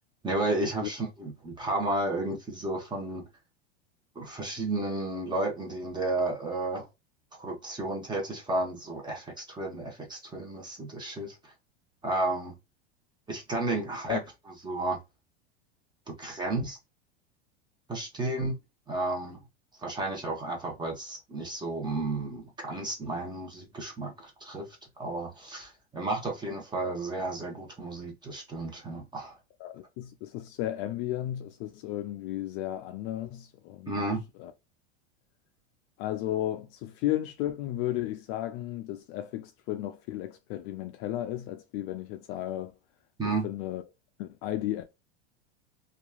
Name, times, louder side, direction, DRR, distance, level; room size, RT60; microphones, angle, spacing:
voice 1, 0.2-3.2 4.1-6.9 7.4-11.5 12.0-12.5 13.3-14.2 14.6-15.0 16.1-16.8 17.9-18.6 18.9-19.4 19.8-24.7 25.0-29.3 33.9-34.2 43.2-43.5, right 2 dB, 15° right, 1.1 m, -32 dB
voice 2, 29.6-34.1 34.4-34.5 36.0-42.7 43.2-43.8 44.2-44.8, left 13 dB, 45° left, 0.4 m, -34 dB
2.9 x 2.4 x 2.3 m
hypercardioid pair, 110°, 33 cm